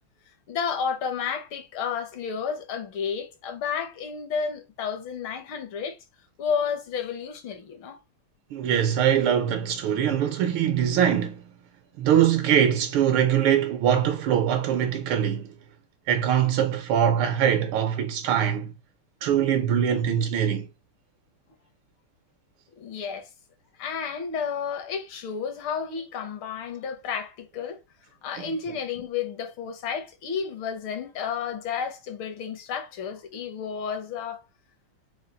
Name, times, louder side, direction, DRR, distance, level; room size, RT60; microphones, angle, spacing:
voice 1, 0.5-6.0 6.4-8.0 22.8-23.3 23.8-27.8 28.2-34.4, left 6 dB, 70° left, 1.6 m, -31 dB
voice 2, 8.5-11.4 12.0-15.5 16.1-18.7 19.2-20.7 28.4-28.5, right 9 dB, 80° right, 1.4 m, -22 dB
4.3 x 2.3 x 3.8 m
omnidirectional pair, 2.4 m